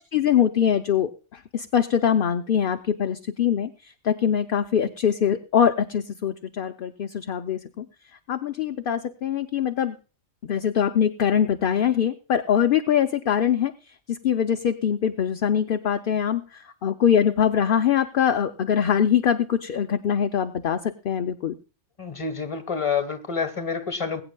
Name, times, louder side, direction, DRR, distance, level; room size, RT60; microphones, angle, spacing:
voice 1, 0.1-3.7 4.0-7.8 8.3-9.9 10.4-13.7 14.1-21.5, left 8 dB, 55° left, 7 dB, 0.7 m, -23 dB
voice 2, 22.0-24.2, left 5 dB, 25° left, 9 dB, 1.2 m, -28 dB
21.0 x 8.8 x 2.2 m, 0.35 s
omnidirectional pair, 1.2 m